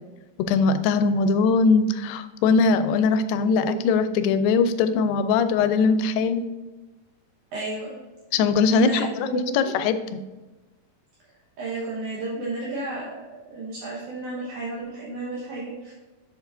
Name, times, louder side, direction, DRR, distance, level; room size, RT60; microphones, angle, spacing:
voice 1, 0.5-6.4 8.3-10.2, left 4 dB, 85° left, 10 dB, 2.3 m, -21 dB
voice 2, 3.4-3.8 7.5-8.0 8.7-9.8 11.6-13.2 13.5-15.9, right 3 dB, 65° right, -5 dB, 2.5 m, -32 dB
8.1 x 7.2 x 2.6 m, 1.2 s
omnidirectional pair, 4.0 m